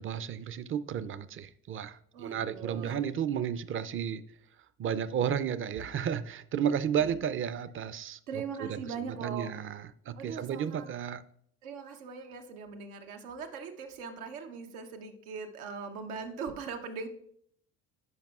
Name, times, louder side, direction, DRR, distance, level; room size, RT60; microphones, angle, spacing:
voice 1, 0.0-4.2 4.8-11.2, right 8 dB, 30° right, 0.4 m, -33 dB
voice 2, 2.1-3.0 7.0-7.1 8.3-9.5 10.2-10.9 11.6-17.1, right 5 dB, 90° right, 0.9 m, -40 dB
11.0 x 5.2 x 2.4 m
hypercardioid pair, 70°, 42 cm